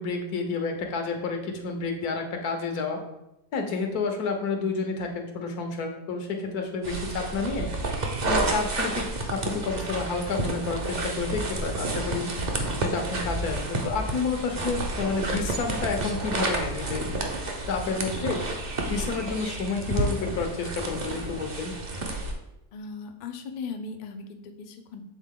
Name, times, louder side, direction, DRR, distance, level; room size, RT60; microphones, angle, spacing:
voice 1, 0.0-3.0 3.5-7.7 8.3-12.3 12.8-17.1 17.7-18.4 18.9-21.7, left 4 dB, 85° left, 4 dB, 1.4 m, -30 dB
sound 1, 6.8-22.3, right 2 dB, 40° right, 0.6 m, -30 dB
voice 2, 22.7-25.0, left 4 dB, 65° left, 5 dB, 0.4 m, -38 dB
7.3 x 3.7 x 3.6 m, 0.88 s
omnidirectional pair, 1.6 m